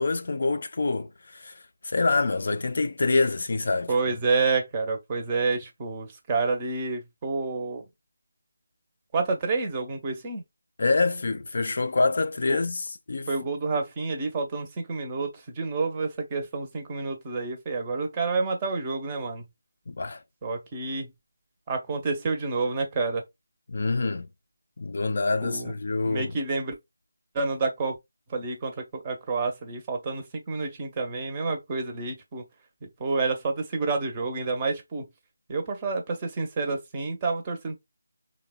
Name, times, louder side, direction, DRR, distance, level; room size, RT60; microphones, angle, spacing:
voice 1, 0.0-3.9 10.8-13.3 19.9-20.2 23.7-24.3 24.8-26.3, left 3 dB, 55° left, 0.3 m, -26 dB
voice 2, 3.9-7.8 9.1-10.4 12.5-12.6 13.3-19.5 20.4-21.1 21.7-23.2 25.4-25.7 26.0-26.7 27.3-28.0 28.3-32.4 33.0-35.1 35.5-37.8, right 4 dB, 20° right, 0.6 m, -29 dB
3.2 x 2.1 x 2.2 m
figure-of-eight pair, 165°, 0 cm